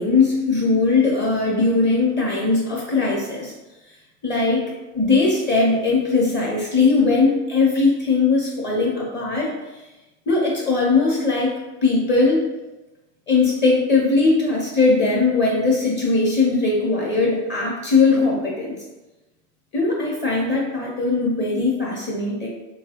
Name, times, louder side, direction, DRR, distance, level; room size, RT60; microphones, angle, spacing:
voice 1, 0.0-3.5 4.2-4.6 4.9-9.5 10.3-11.5 11.8-12.4 13.3-18.8 19.7-22.5, left 3 dB, 25° left, -3 dB, 0.7 m, -19 dB
3.1 x 2.3 x 2.9 m, 1.1 s
hypercardioid pair, 85°, 44 cm